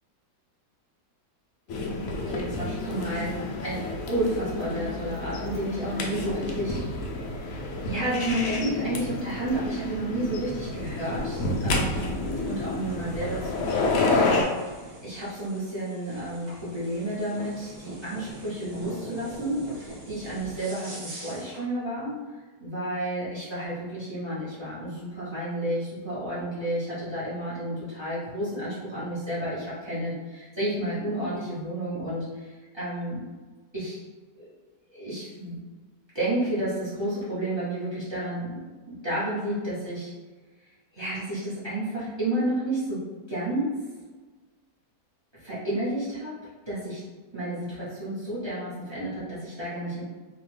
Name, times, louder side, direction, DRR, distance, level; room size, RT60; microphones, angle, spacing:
sound 1, 1.7-14.4, left 2 dB, 70° left, 0.8 m, -29 dB
voice 1, 2.2-6.8 7.1-7.5 7.8-12.1 12.5-33.2 33.7-34.0 34.4-34.5 34.9-35.6 36.1-38.6 38.9-40.1 40.9-43.8 45.4-47.0 47.3-50.0, right 1 dB, 30° right, -11 dB, 0.5 m, -31 dB
sound 2, 10.7-21.7, right 1 dB, 45° right, 0.9 m, -45 dB
2.9 x 2.1 x 3.1 m, 1.3 s
omnidirectional pair, 1.9 m